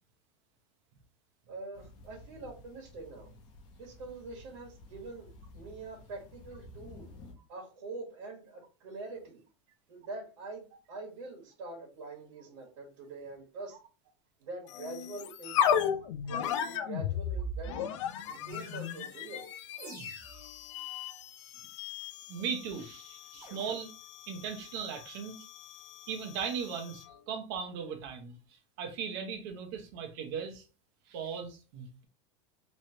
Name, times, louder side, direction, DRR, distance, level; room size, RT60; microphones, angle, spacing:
voice 1, 1.5-3.3 3.8-7.1 7.5-9.4 9.9-13.8 14.4-17.9 18.3-19.5, right 3 dB, 85° right, 1.5 m, -45 dB
sound 1, 1.7-7.3, left 2 dB, 30° left, 0.8 m, -53 dB
sound 2, 14.7-27.2, left 8 dB, 75° left, 0.5 m, -36 dB
sound 3, 18.5-19.1 19.8-20.6 23.4-23.8, right 2 dB, 25° right, 1.1 m, -49 dB
voice 2, 22.3-23.9 24.3-25.4 26.1-30.7 31.1-32.1, right 6 dB, 50° right, 0.9 m, -38 dB
3.1 x 3.1 x 2.8 m
supercardioid pair, 175°, 16 cm